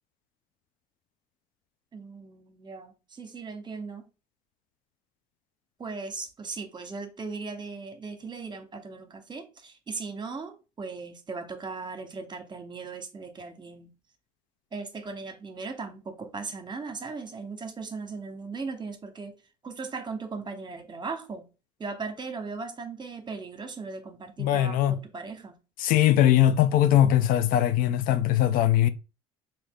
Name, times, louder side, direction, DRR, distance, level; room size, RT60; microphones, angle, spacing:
voice 1, 1.9-4.1 5.8-13.9 14.7-19.3 19.6-21.4 21.8-25.5, right 4 dB, 30° right, 1.0 m, -38 dB
voice 2, 24.4-25.0 25.8-28.9, left 11 dB, 65° left, 0.4 m, -21 dB
3.1 x 2.8 x 3.7 m
hypercardioid pair, 70°, 15 cm